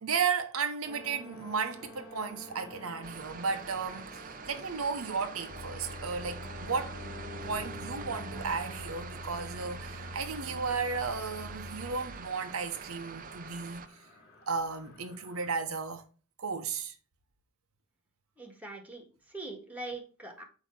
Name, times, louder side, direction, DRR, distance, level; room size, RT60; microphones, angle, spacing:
voice 1, 0.0-7.0 7.4-13.9 14.5-16.0 16.4-16.9, right 5 dB, 80° right, 0.9 m, -34 dB
sound 1, 0.8-15.5, left 2 dB, 45° left, 2.4 m, -51 dB
sound 2, 3.0-13.9, right 6 dB, 40° right, 0.5 m, -45 dB
sound 3, 5.5-12.2, left 2 dB, 85° left, 1.0 m, -45 dB
voice 2, 18.4-20.4, right 2 dB, 5° right, 1.5 m, -42 dB
8.2 x 2.9 x 5.8 m
head